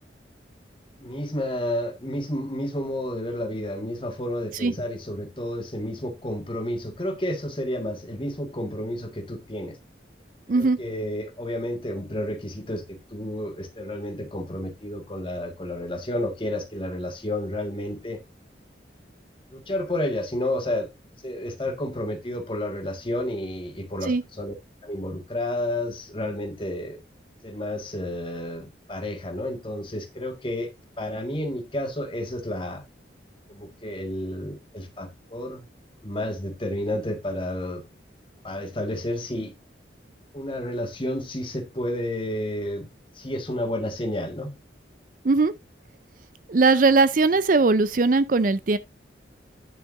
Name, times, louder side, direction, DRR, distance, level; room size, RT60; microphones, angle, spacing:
voice 1, 1.0-9.8 10.5-18.2 19.5-20.9 21.2-24.5 24.8-27.0 27.4-30.7 31.0-32.8 33.5-35.7 36.0-37.8 38.4-39.5 40.3-42.9 43.1-44.5, left 1 dB, 25° left, 1.6 m, -31 dB
voice 2, 46.5-48.8, right 3 dB, 45° right, 0.5 m, -19 dB
9.9 x 6.4 x 2.5 m
head